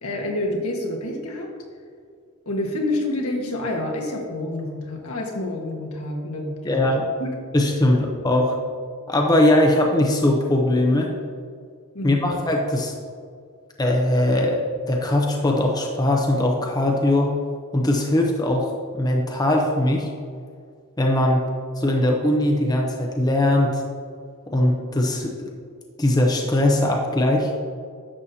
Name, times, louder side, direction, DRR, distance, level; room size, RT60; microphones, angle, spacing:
voice 1, 0.0-1.5 2.4-6.7 7.2-7.3 11.9-12.4, left 1 dB, 75° left, 0 dB, 1.5 m, -28 dB
voice 2, 6.6-7.1 7.5-8.6 9.1-11.1 12.0-13.0 13.8-14.6 14.9-17.3 17.7-20.1 21.0-21.5 21.8-23.8 24.5-25.3 26.0-27.5, left 1 dB, 15° left, 0 dB, 0.7 m, -20 dB
11.0 x 7.3 x 2.8 m, 2.1 s
head